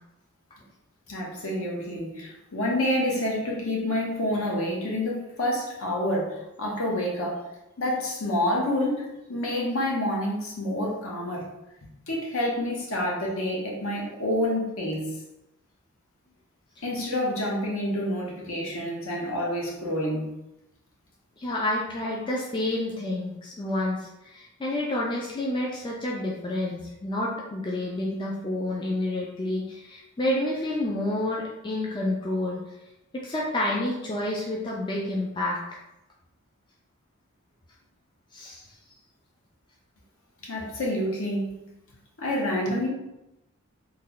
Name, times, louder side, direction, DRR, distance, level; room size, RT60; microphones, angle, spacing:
voice 1, 1.1-7.4 7.8-11.5 12.1-15.2 16.8-20.3 40.4-41.6 42.2-42.9, left 1 dB, 65° left, -2 dB, 0.9 m, -28 dB
voice 2, 21.4-32.6 33.1-35.8 38.3-38.6, left 1 dB, 20° left, -3 dB, 0.3 m, -29 dB
3.2 x 2.1 x 3.7 m, 0.91 s
head